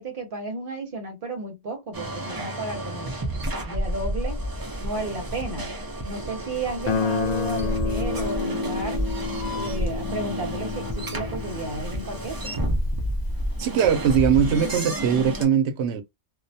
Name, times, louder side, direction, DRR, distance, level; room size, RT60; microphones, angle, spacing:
voice 1, 0.0-3.1 3.7-4.4 4.8-5.7 6.0-9.1 9.5-12.5, right 2 dB, 55° right, 0.9 m, -33 dB
sound 1, 1.9-15.5, equal, 35° right, 0.4 m, -30 dB
Guitar, 6.8-13.6, left 5 dB, 50° left, 0.6 m, -31 dB
voice 2, 13.6-16.0, right 8 dB, 85° right, 0.9 m, -21 dB
2.3 x 2.1 x 2.6 m
omnidirectional pair, 1.1 m